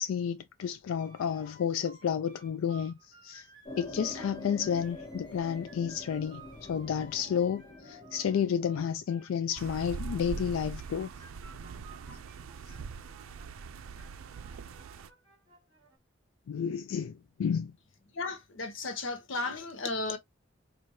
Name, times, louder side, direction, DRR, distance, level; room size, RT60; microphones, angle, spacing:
voice 1, 0.0-3.5 3.8-11.1 16.5-17.7, left 7 dB, 80° left, 0.3 m, -31 dB
sound 1, 1.0-16.0, right 3 dB, 25° right, 1.7 m, -56 dB
sound 2, 3.7-8.8, left 2 dB, 20° left, 0.9 m, -45 dB
sound 3, 9.6-15.1, right 5 dB, 90° right, 0.4 m, -42 dB
voice 2, 18.1-20.2, left 3 dB, 65° left, 0.8 m, -34 dB
4.5 x 2.5 x 2.8 m
head